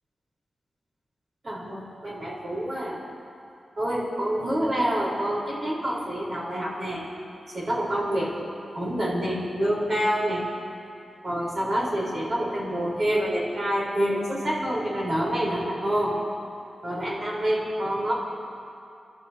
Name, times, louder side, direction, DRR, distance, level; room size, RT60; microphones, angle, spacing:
voice 1, 1.4-3.0 3.8-7.0 7.5-8.3 8.7-10.4 11.2-16.1 16.8-18.1, equal, 40° right, -6 dB, 4.2 m, -27 dB
28.5 x 13.0 x 2.9 m, 2.6 s
wide cardioid pair, 155°, 0 cm